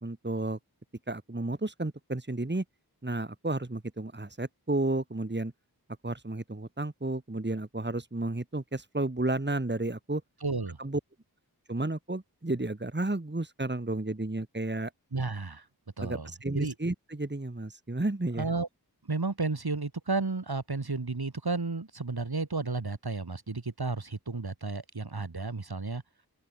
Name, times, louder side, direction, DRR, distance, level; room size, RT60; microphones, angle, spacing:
voice 1, 0.0-0.6 1.1-2.6 3.0-5.5 6.0-10.2 10.8-11.0 11.7-14.9 16.0-18.5, right 2 dB, 30° right, 2.7 m, -32 dB
voice 2, 10.4-10.8 15.1-15.7 16.0-16.7 18.4-18.7 19.1-26.0, right 3 dB, 70° right, 5.1 m, -32 dB
open air
wide cardioid pair, 50°, 39 cm